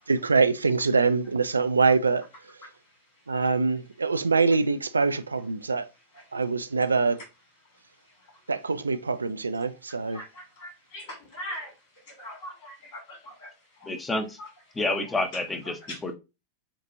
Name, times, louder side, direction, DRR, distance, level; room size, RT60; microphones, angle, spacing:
voice 1, 0.1-2.3 3.3-5.9 6.3-7.2 8.5-10.2, right 4 dB, 75° right, 0.3 m, -24 dB
voice 2, 2.6-3.5 5.3-6.4 7.6-8.5 9.6-14.0 14.4-15.2 15.6-16.0, equal, 50° left, 2.7 m, -44 dB
voice 3, 13.8-14.4 14.8-15.8 16.0-16.1, left 2 dB, 10° left, 0.8 m, -28 dB
7.3 x 2.5 x 2.6 m
figure-of-eight pair, 90°, 0 cm